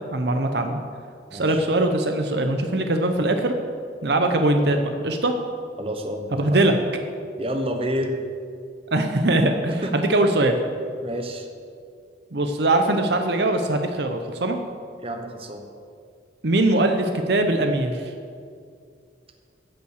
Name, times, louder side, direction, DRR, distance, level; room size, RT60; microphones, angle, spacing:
voice 1, 0.1-0.8 1.3-3.5 4.0-5.4 6.3-6.7 8.9-10.6 12.3-14.6 16.4-18.1, right 2 dB, 60° right, 5 dB, 0.8 m, -21 dB
voice 2, 5.8-6.6 7.4-8.2 9.8-10.1 11.0-11.5 15.0-15.6, equal, 30° right, 4 dB, 1.0 m, -29 dB
16.0 x 5.6 x 6.5 m, 2.3 s
head